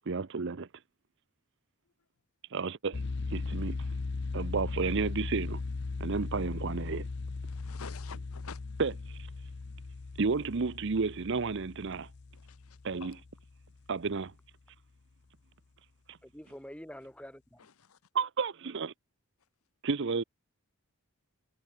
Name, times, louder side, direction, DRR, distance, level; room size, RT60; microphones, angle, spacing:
voice 1, 0.1-0.7 2.5-3.0 3.3-3.9 4.3-5.6 6.0-7.1 8.8-8.9 10.2-12.1 12.8-13.1 13.9-14.3 16.1-16.2 18.1-18.9 19.8-20.2, right 4 dB, 55° right, 0.6 m, -31 dB
sound 1, 2.9-13.8, left 3 dB, 50° left, 0.6 m, -38 dB
voice 2, 7.4-8.6 12.3-13.2 17.6-18.0, left 6 dB, 80° left, 0.9 m, -49 dB
voice 3, 16.2-17.6, equal, 5° left, 2.9 m, -46 dB
head